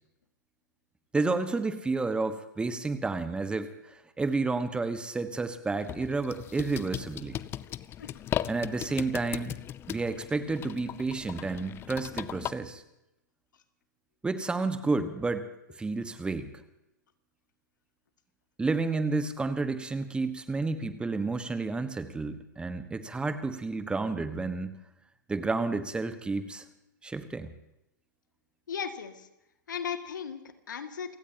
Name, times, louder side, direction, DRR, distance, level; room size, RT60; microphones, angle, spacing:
voice 1, 1.1-7.4 8.5-9.6 9.9-12.8 14.2-15.5 15.8-16.5 18.6-24.8 25.3-26.6 27.0-27.5, right 3 dB, 10° right, 11 dB, 1.3 m, -31 dB
sound 1, 5.8-12.5, left 11 dB, 20° left, 0.5 m, -38 dB
voice 2, 28.7-29.3 29.7-31.2, left 7 dB, 70° left, 8 dB, 2.0 m, -36 dB
29.5 x 17.0 x 2.9 m, 0.89 s
figure-of-eight pair, 110°, 11 cm